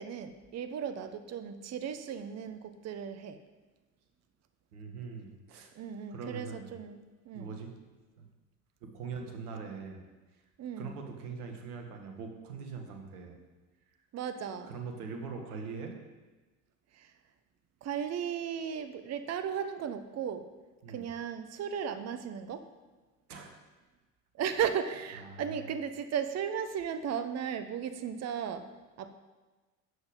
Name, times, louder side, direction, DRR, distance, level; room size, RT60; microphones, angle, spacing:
voice 1, 0.0-3.4 5.7-7.5 10.6-10.9 14.1-14.7 16.9-17.1 17.8-20.4 20.9-22.7 24.4-28.6 29.0-29.1, right 8 dB, 35° right, 10 dB, 0.9 m, -36 dB
voice 2, 4.7-5.7 6.1-6.7 7.3-7.7 8.2-8.3 8.8-10.0 10.8-13.4 14.6-15.9 20.8-21.1 23.3-23.5 25.2-25.6, right 5 dB, 70° right, 4 dB, 1.9 m, -42 dB
11.5 x 6.9 x 5.3 m, 1.2 s
figure-of-eight pair, 60°, 47 cm